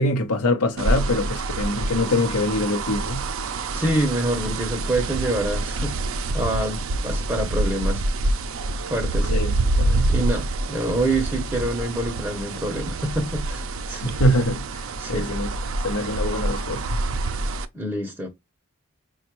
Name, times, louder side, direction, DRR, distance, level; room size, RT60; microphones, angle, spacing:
voice 1, 0.0-3.2 9.3-10.1 14.0-14.6 15.1-15.5 15.8-16.8, left 1 dB, 85° left, 0.7 m, -24 dB
sound 1, 0.8-17.6, right 2 dB, 65° right, 0.4 m, -26 dB
voice 2, 3.7-6.0 6.3-8.1 8.9-9.3 10.1-14.2 15.0-15.3 17.7-18.3, right 1 dB, 10° right, 0.6 m, -26 dB
5.3 x 2.3 x 2.9 m
head